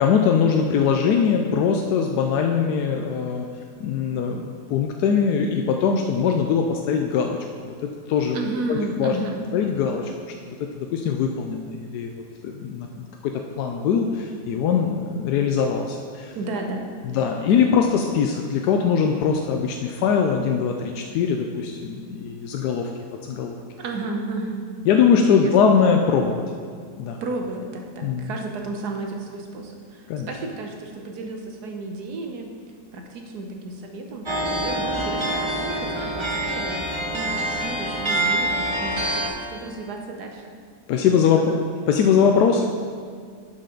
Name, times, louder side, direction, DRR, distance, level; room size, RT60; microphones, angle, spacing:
voice 1, 0.0-3.5 3.8-7.7 8.1-8.4 8.7-9.2 9.5-10.1 10.5-12.1 12.4-16.3 17.0-22.9 23.2-23.5 24.9-26.4 27.0-27.2 28.0-28.3 30.1-30.3 40.9-41.4 41.9-42.6, left 6 dB, 85° left, 3 dB, 1.2 m, -21 dB
voice 2, 8.3-9.4 16.3-16.9 23.8-24.6 25.1-25.7 27.2-32.5 32.9-36.8 37.1-40.4 41.0-41.5, right 2 dB, 85° right, 3 dB, 1.5 m, -32 dB
sound 1, 34.3-39.3, right 1 dB, 20° right, 0.9 m, -26 dB
11.5 x 5.7 x 3.8 m, 2.1 s
omnidirectional pair, 1.7 m